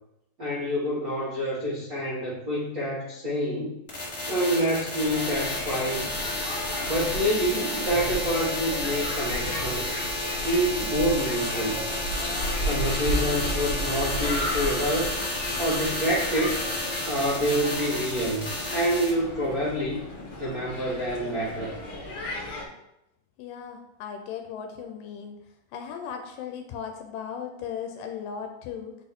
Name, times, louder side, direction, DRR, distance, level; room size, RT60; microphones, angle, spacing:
voice 1, 0.4-3.8 4.3-6.1 6.8-10.0 10.4-11.8 12.6-15.2 15.6-16.6 17.0-20.0 20.4-21.7, equal, 70° right, -8 dB, 0.8 m, -27 dB
sound 1, 3.9-19.1, left 1 dB, 35° left, 1.4 m, -31 dB
sound 2, 5.0-22.6, equal, 55° left, 1.8 m, -34 dB
voice 2, 23.4-25.4 25.7-29.0, left 7 dB, 85° left, 5 dB, 2.2 m, -37 dB
7.8 x 4.3 x 3.5 m, 0.85 s
omnidirectional pair, 3.8 m